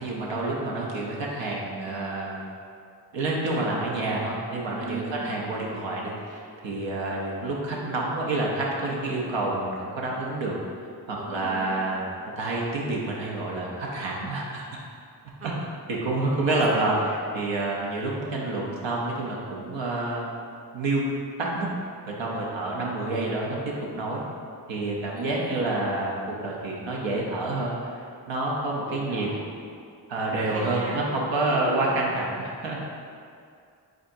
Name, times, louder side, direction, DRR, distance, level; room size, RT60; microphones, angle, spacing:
voice 1, 0.0-2.4 3.1-10.6 11.1-12.1 12.4-14.6 15.9-16.9 17.3-20.3 20.7-21.0 21.4-21.7 22.1-23.6 24.0-24.2 24.7-29.3 30.1-32.8, right 2 dB, 75° right, -3 dB, 0.8 m, -28 dB
voice 2, 4.8-5.3 11.2-11.8 15.4-15.7 16.5-17.0 25.2-25.7 28.9-29.4 30.5-31.1 31.5-31.9, right 3 dB, 30° right, -1 dB, 0.8 m, -37 dB
5.1 x 3.7 x 2.6 m, 2.4 s
supercardioid pair, 40°, 45 cm